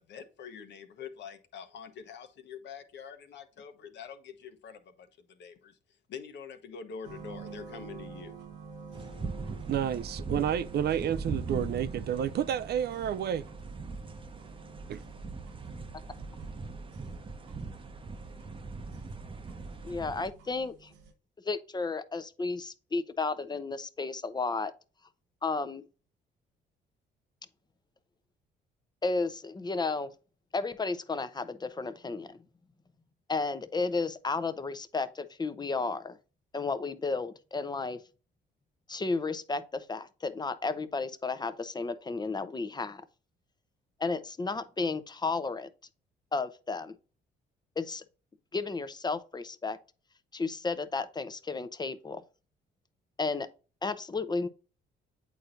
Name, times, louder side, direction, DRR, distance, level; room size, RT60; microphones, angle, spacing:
voice 1, 0.0-5.8 6.1-8.3, left 7 dB, 65° left, 1.1 m, -45 dB
sound 1, 7.0-21.1, right 5 dB, 90° right, 0.9 m, -49 dB
sound 2, 8.9-20.3, right 3 dB, 25° right, 0.8 m, -40 dB
voice 2, 9.7-13.4 14.9-15.0, right 9 dB, 55° right, 0.4 m, -30 dB
voice 3, 19.8-20.9 21.4-24.7 25.4-25.8 29.0-30.1 30.5-32.4 33.3-36.2 36.5-38.0 38.9-43.0 44.0-45.7 46.3-46.9 47.8-48.0 48.5-49.8 50.3-52.2 53.2-53.5 53.8-54.5, left 3 dB, 20° left, 0.8 m, -33 dB
8.4 x 4.4 x 2.6 m
supercardioid pair, 65°, 20 cm